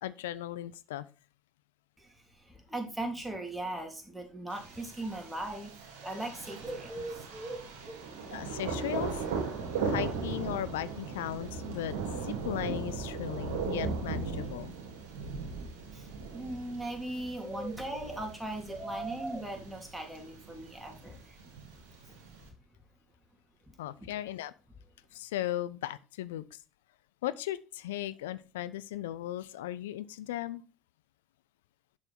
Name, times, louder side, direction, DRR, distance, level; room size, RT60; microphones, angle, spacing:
voice 1, 0.0-1.1 8.3-9.2 9.8-12.0 12.2-14.7 23.8-24.5 25.1-26.6 27.2-30.6, left 13 dB, 75° left, 17 dB, 0.4 m, -37 dB
voice 2, 2.7-5.7 6.0-8.0 16.3-21.2, right 1 dB, 10° right, 2 dB, 3.2 m, -38 dB
Thunder, 4.5-22.5, right 5 dB, 75° right, 2.7 m, -38 dB
7.2 x 6.8 x 4.3 m, 0.33 s
hypercardioid pair, 60°, 0 cm